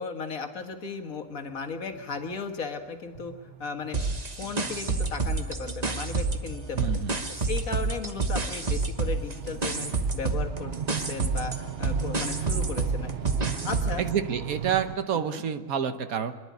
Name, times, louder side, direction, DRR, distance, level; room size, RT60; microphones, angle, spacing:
voice 1, 0.0-3.3 3.6-4.0 4.4-7.0 7.3-13.1 13.4-14.0 15.3-15.4, left 5 dB, 65° left, 6 dB, 1.9 m, -36 dB
sound 1, 1.6-1.7 1.9-2.6 3.1-3.2 3.8-3.9 4.7-5.1 5.8-5.9 6.2-15.0, right 8 dB, 50° right, 0.9 m, -37 dB
sound 2, 3.1-13.3, right 2 dB, 35° left, 2.7 m, -45 dB
sound 3, 3.9-6.5 6.8-14.0, right 3 dB, 30° right, 1.2 m, -29 dB
voice 2, 6.7-7.1 14.0-16.3, right 8 dB, 70° right, 10 dB, 1.4 m, -28 dB
25.5 x 11.0 x 9.4 m, 1.5 s
omnidirectional pair, 1.6 m